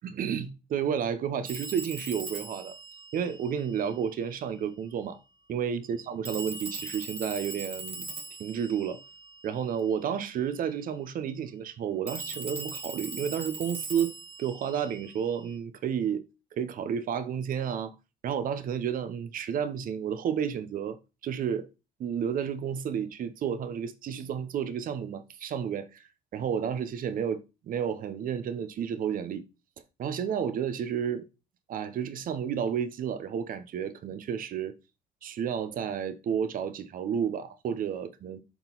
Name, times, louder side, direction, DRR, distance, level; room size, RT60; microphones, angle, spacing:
voice 1, 0.0-2.7 3.1-5.2 5.5-8.1 8.4-9.0 9.4-16.2 16.5-17.9 18.2-21.0 21.2-21.7 22.0-26.0 26.3-29.4 30.0-31.2 31.7-34.7 35.2-38.4, right 8 dB, 55° right, 0.9 m, -31 dB
Telephone, 1.4-4.1 6.2-9.9 12.1-15.5, right 3 dB, 35° right, 1.5 m, -41 dB
7.0 x 4.0 x 4.0 m
cardioid pair, 110°, 17 cm